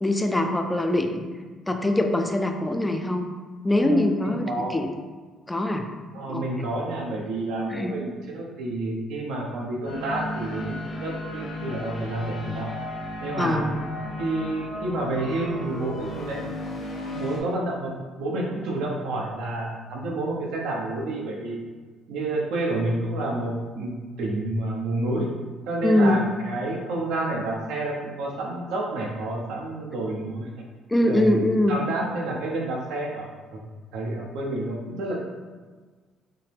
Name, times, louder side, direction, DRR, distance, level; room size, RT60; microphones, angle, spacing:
voice 1, 0.0-1.3 1.7-3.3 3.6-4.9 5.5-5.8 6.3-6.4 7.7-7.9 13.4-13.7 25.8-26.2 30.9-31.8, left 1 dB, 10° left, 5 dB, 0.3 m, -23 dB
voice 2, 3.8-4.8 6.1-12.7 13.2-13.6 14.2-16.4 17.1-21.6 22.1-25.3 25.7-30.5 31.0-33.3 33.5-33.6 33.9-35.2, right 2 dB, 85° right, -1 dB, 0.8 m, -29 dB
sound 1, 9.8-17.4, left 1 dB, 50° left, 1.1 m, -34 dB
5.6 x 2.0 x 3.4 m, 1.4 s
cardioid pair, 135°, 0 cm